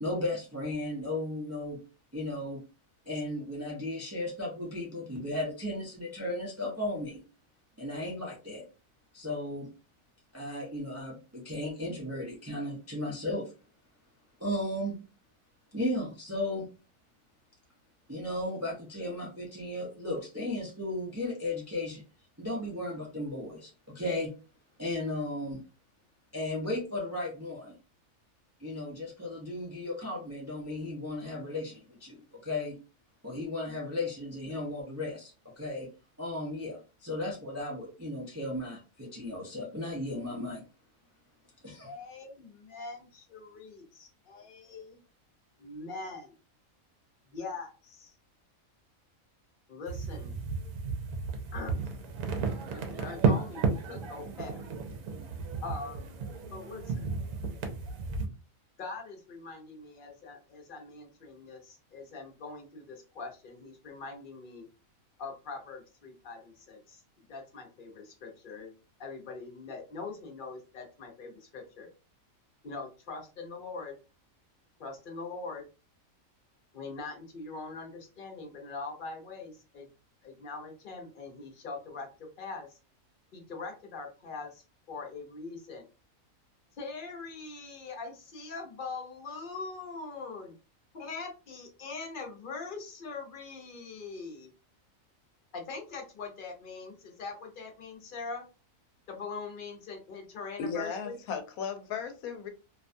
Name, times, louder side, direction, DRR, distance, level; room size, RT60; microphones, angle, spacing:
voice 1, 0.0-1.8 2.1-2.6 3.1-7.2 7.8-8.6 9.1-9.7 10.3-13.5 14.4-15.0 15.7-16.7 18.1-22.0 22.4-24.3 24.8-25.6 26.3-27.8 28.6-32.8 33.2-35.9 36.2-40.6 41.6-41.9, left 1 dB, 25° right, 0.3 m, -35 dB
voice 2, 41.8-45.0 45.6-46.3 47.3-48.1 49.7-50.3 51.5-52.1 52.7-54.5 55.6-56.2 56.5-57.1 58.8-64.7 65.2-68.7 69.0-71.9 72.6-74.0 74.8-75.6 76.7-79.9 80.2-82.8 83.3-85.8 86.8-90.5 90.9-94.5 95.5-98.5 99.1-101.2, left 4 dB, 50° left, 0.7 m, -42 dB
sound 1, 49.9-58.3, right 5 dB, 75° right, 1.0 m, -33 dB
voice 3, 100.6-102.5, left 6 dB, 90° left, 1.0 m, -35 dB
2.6 x 2.2 x 2.5 m
omnidirectional pair, 1.4 m